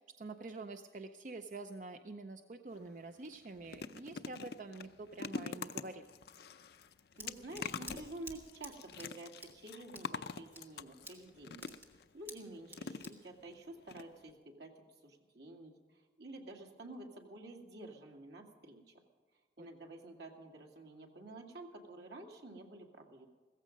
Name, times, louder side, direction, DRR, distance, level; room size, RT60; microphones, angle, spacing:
voice 1, 0.0-6.0 19.6-19.7, right 3 dB, 45° right, 7 dB, 0.5 m, -47 dB
sound 1, 2.7-2.9 3.3-12.0 12.7-13.5 13.9-14.0 14.3-14.4, left 5 dB, 65° left, 0.5 m, -45 dB
Scissors, 6.7-14.4, right 1 dB, 10° right, 1.7 m, -54 dB
voice 2, 7.1-11.7 12.1-14.7 15.0-18.9 19.6-23.3, right 2 dB, 80° right, 1 dB, 2.2 m, -50 dB
16.0 x 15.0 x 5.2 m, 1.5 s
head